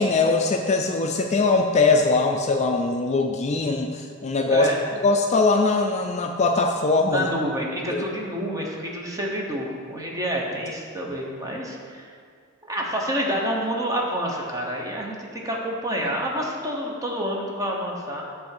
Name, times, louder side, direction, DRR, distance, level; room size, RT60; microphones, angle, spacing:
voice 1, 0.0-4.7 5.0-7.3 7.9-8.0, left 3 dB, 30° left, 3 dB, 0.4 m, -21 dB
voice 2, 4.5-4.8 7.1-12.1 12.7-18.2, equal, 15° right, -2 dB, 1.0 m, -28 dB
8.7 x 3.4 x 6.6 m, 2.1 s
head